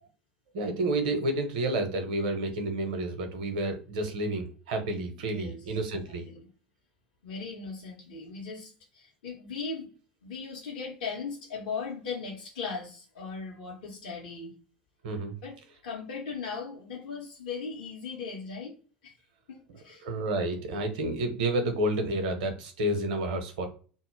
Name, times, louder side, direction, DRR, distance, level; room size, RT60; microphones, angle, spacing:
voice 1, 0.5-6.3 15.0-15.3 20.0-23.7, right 1 dB, 60° right, 6 dB, 0.7 m, -30 dB
voice 2, 5.2-5.7 6.3-6.4 7.2-9.9 10.2-14.5 15.4-18.8 19.0-19.2 19.5-20.1, left 5 dB, 65° left, -2 dB, 0.6 m, -38 dB
2.1 x 2.0 x 3.1 m, 0.38 s
figure-of-eight pair, 70°, 5 cm